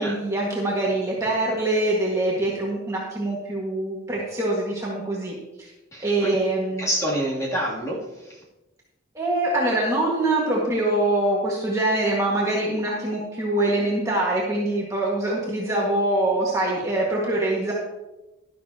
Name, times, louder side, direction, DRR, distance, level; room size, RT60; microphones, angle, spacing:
voice 1, 0.0-5.7 6.0-6.9 9.2-17.7, right 2 dB, 15° right, -5 dB, 1.8 m, -24 dB
voice 2, 5.9-6.3 6.8-8.4, right 1 dB, 15° left, -5 dB, 2.8 m, -27 dB
12.5 x 11.5 x 2.9 m, 1.0 s
head